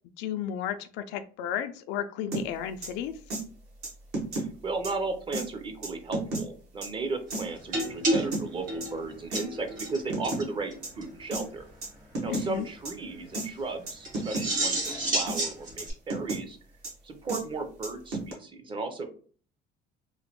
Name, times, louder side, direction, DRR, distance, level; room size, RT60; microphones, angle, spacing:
voice 1, 0.2-3.1 12.2-12.7, left 9 dB, 85° left, 9 dB, 0.4 m, -33 dB
sound 1, 2.3-2.4 2.8-2.9 3.3-3.4 3.8-4.5 4.8-4.9 5.3-5.5 5.8-6.4 6.8-6.9 7.3-7.4 7.8-8.4 8.8-8.9 9.3-9.4 9.8-10.4 10.8-10.9 11.3-11.4 11.8-11.9 12.1-12.5 12.8-12.9 13.3-13.5 13.9-14.5 14.8-14.9 15.3-15.5 15.8-16.4 16.8-16.9 17.3-17.4 17.8-18.3, right 2 dB, 70° right, 1.0 m, -32 dB
voice 2, 4.3-11.6 12.2-14.8 15.1-16.6 17.0-19.0, right 3 dB, 30° right, 6 dB, 0.5 m, -35 dB
sound 2, 7.7-10.0 10.2-10.4 10.7-10.8 11.0-11.1 14.0-15.9, right 1 dB, 50° right, 1.2 m, -30 dB
3.0 x 2.2 x 2.9 m, 0.43 s
cardioid pair, 130°, 18 cm